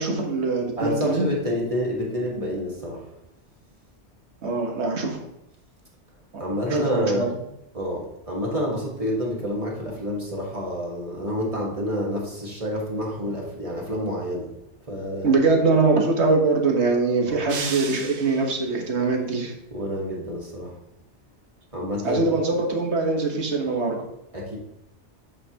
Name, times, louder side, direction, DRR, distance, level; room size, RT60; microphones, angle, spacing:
voice 1, 0.0-1.3 4.4-5.2 6.3-7.3 15.2-19.5 22.0-24.0, right 3 dB, 70° right, 1 dB, 1.6 m, -23 dB
voice 2, 0.8-3.1 6.4-7.3 7.7-14.5 14.9-15.3 17.2-17.4 19.7-20.7 21.7-22.3 24.3-24.6, equal, 30° right, -3 dB, 1.6 m, -28 dB
sound 1, 17.5-18.8, right 5 dB, 55° right, 0.9 m, -34 dB
9.0 x 5.5 x 2.9 m, 0.83 s
omnidirectional pair, 1.2 m